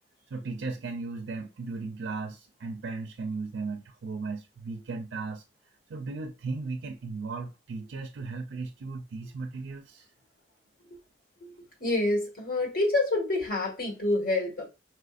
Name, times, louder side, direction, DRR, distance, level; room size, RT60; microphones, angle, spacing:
voice 1, 0.3-5.4 5.9-10.1, right 3 dB, 80° right, 0.4 m, -36 dB
voice 2, 11.4-14.7, left 2 dB, 50° left, 1.4 m, -28 dB
4.4 x 2.5 x 2.4 m
head